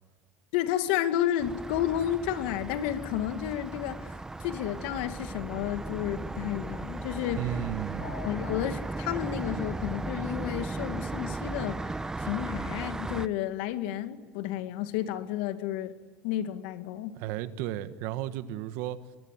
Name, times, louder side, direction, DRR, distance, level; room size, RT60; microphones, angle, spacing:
voice 1, 0.5-7.4 8.0-15.9 16.2-17.2, left 11 dB, 80° left, 9 dB, 2.3 m, -31 dB
sound 1, 1.4-13.3, right 2 dB, 10° right, 1.0 m, -36 dB
voice 2, 7.4-8.1 17.2-19.0, right 12 dB, 70° right, 12 dB, 1.6 m, -34 dB
25.0 x 22.0 x 9.5 m, 1.3 s
supercardioid pair, 100°, 5 cm